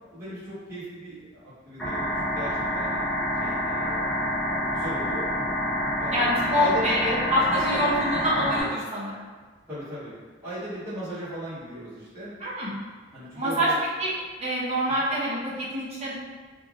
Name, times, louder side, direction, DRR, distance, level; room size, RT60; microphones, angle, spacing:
voice 1, 0.1-3.0 3.4-5.3 6.0-7.2 7.5-8.7 9.7-10.1 10.4-12.3 13.1-13.8 14.9-15.0, equal, 15° right, -16 dB, 1.1 m, -37 dB
sound 1, 1.8-8.6, equal, 5° left, 0.8 m, -27 dB
voice 2, 6.1-9.3 12.4-12.8 13.4-13.7 14.0-14.1 14.4-16.1, equal, 35° right, -8 dB, 0.9 m, -26 dB
3.3 x 2.5 x 2.4 m, 1.4 s
head